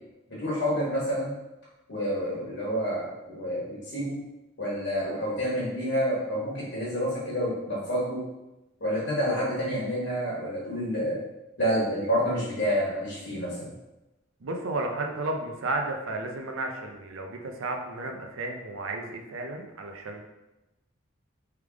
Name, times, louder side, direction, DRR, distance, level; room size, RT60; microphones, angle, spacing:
voice 1, 0.3-1.3 1.9-4.2 4.6-8.2 8.8-11.2 11.6-13.7, equal, 65° left, -7 dB, 1.4 m, -28 dB
voice 2, 14.4-20.2, right 2 dB, 90° right, 3 dB, 0.6 m, -33 dB
3.4 x 3.4 x 3.5 m, 0.98 s
head